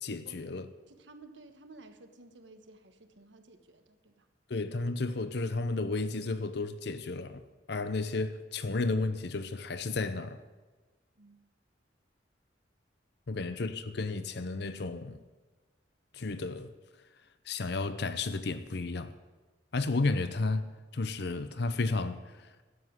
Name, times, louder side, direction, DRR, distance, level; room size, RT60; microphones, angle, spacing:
voice 1, 0.0-0.7 4.5-7.4 7.7-10.4 13.3-15.2 16.1-16.7 17.4-19.1 19.7-22.5, left 3 dB, 60° left, 0.7 m, -32 dB
voice 2, 0.8-4.3 11.2-11.4 13.3-13.5, right 2 dB, 75° right, 1.3 m, -54 dB
12.5 x 8.0 x 9.4 m
head